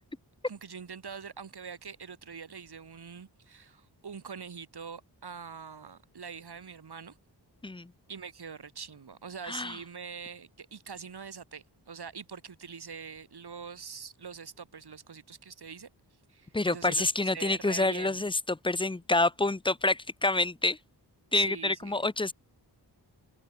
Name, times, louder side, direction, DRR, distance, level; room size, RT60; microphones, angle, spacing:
voice 1, 0.5-7.2 8.1-15.9 16.3-18.2 21.3-22.1, right 6 dB, 70° right, 6.8 m, -44 dB
voice 2, 9.4-9.8 16.5-20.8 21.3-22.3, left 2 dB, 10° left, 0.7 m, -27 dB
wide cardioid pair, 135°, 41 cm